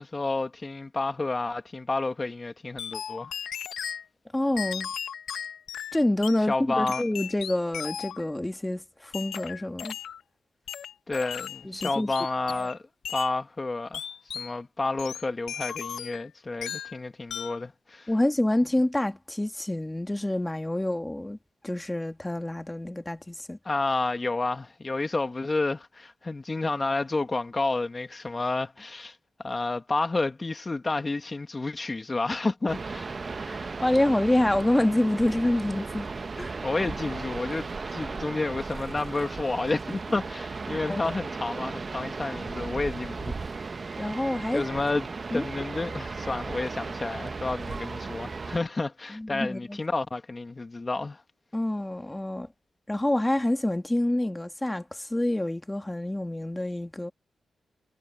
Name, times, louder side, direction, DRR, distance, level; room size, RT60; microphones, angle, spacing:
voice 1, 0.0-3.3 6.5-7.0 11.1-12.8 13.1-14.0 14.3-18.1 23.6-29.2 29.4-33.2 36.6-43.4 44.5-51.2, left 3 dB, 30° left, 1.7 m, -30 dB
sound 1, 2.8-4.0 4.6-6.4 6.9-8.3 9.1-10.2 10.7-12.8 13.0-13.3 13.9-14.5 15.0-16.3 16.6-17.0 17.3-17.6, left 8 dB, 90° left, 1.2 m, -36 dB
voice 2, 4.3-4.9 5.9-9.9 11.6-12.1 18.1-21.4 21.6-23.6 33.5-36.1 36.4-36.6 40.9-41.1 44.0-44.6 45.3-45.4 49.1-49.8 51.5-52.5 52.9-57.1, left 1 dB, 10° left, 1.8 m, -27 dB
sound 2, 32.7-48.6, right 4 dB, 40° right, 0.8 m, -36 dB
cardioid pair, 85°, 0 cm